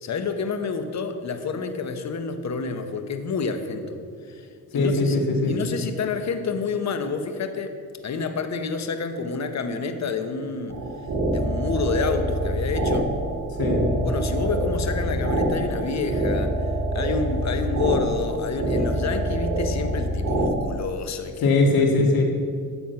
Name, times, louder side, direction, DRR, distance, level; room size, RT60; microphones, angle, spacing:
voice 1, 0.0-4.0 4.3-4.5 4.7-5.2 5.5-7.8 8.0-10.8 11.2-13.1 14.0-16.6 16.9-21.5, left 4 dB, 50° left, 7 dB, 1.1 m, -28 dB
voice 2, 4.7-5.5 13.5-13.8 21.4-22.2, left 3 dB, 75° left, 1 dB, 2.1 m, -20 dB
sound 1, 10.7-20.5, right 1 dB, 50° right, 2.6 m, -25 dB
12.5 x 7.4 x 5.8 m, 2.3 s
cardioid pair, 100°, 36 cm